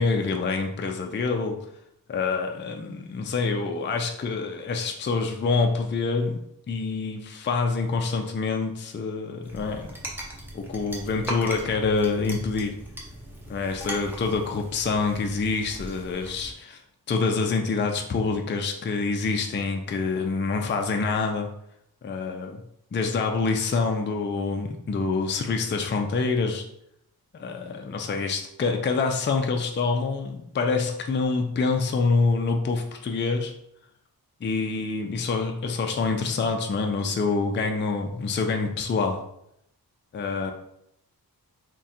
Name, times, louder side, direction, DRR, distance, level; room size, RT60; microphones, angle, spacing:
voice 1, 0.0-1.7 2.1-10.0 10.5-12.8 13.5-16.8 17.1-21.5 22.0-22.6 22.9-26.7 27.3-33.5 34.4-39.2 40.1-40.5, left 4 dB, 30° left, 3 dB, 0.4 m, -26 dB
sound 1, 9.4-16.5, right 1 dB, 5° right, 0.7 m, -39 dB
3.6 x 2.2 x 4.2 m, 0.77 s
wide cardioid pair, 100°, 38 cm